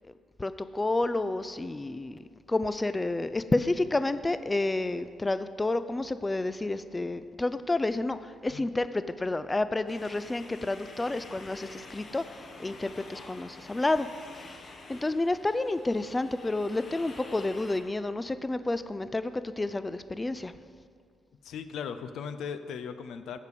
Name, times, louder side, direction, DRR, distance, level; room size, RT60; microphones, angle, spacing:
voice 1, 0.4-14.1 14.3-20.6, left 2 dB, 20° left, 12 dB, 0.3 m, -30 dB
sound 1, 9.9-17.8, left 2 dB, 50° left, 1.3 m, -48 dB
voice 2, 21.4-23.4, left 7 dB, 80° left, 10 dB, 0.5 m, -37 dB
15.0 x 5.2 x 4.9 m, 2.1 s
cardioid pair, 90°, 0 cm